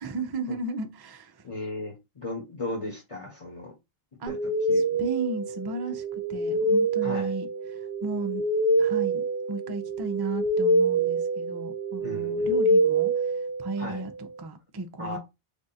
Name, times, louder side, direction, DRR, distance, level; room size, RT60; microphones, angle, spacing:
voice 1, 0.0-1.5 4.2-4.4 4.7-8.4 8.8-15.2, right 2 dB, 30° right, 0.4 m, -35 dB
voice 2, 1.4-3.7 4.3-5.0 7.0-7.3 12.0-12.6 13.8-14.0 15.0-15.2, left 2 dB, 30° left, 1.1 m, -36 dB
sound 1, 4.3-14.0, right 2 dB, 65° right, 0.9 m, -26 dB
3.5 x 2.5 x 4.1 m
omnidirectional pair, 1.1 m